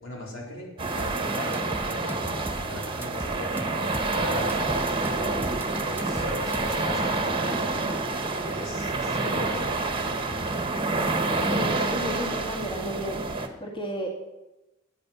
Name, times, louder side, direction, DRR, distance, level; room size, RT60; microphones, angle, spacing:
voice 1, 0.0-5.3 5.8-7.9 8.4-9.7, left 1 dB, 80° left, -1 dB, 3.9 m, -38 dB
sound 1, 0.8-13.5, right 3 dB, 25° right, 1.1 m, -28 dB
sound 2, 1.0-6.9, right 1 dB, 10° right, 0.7 m, -37 dB
sound 3, 4.1-13.4, right 1 dB, 45° right, 0.9 m, -42 dB
voice 2, 11.5-13.2 13.6-14.1, equal, 25° left, 0 dB, 2.0 m, -32 dB
13.0 x 8.8 x 6.8 m, 0.98 s
head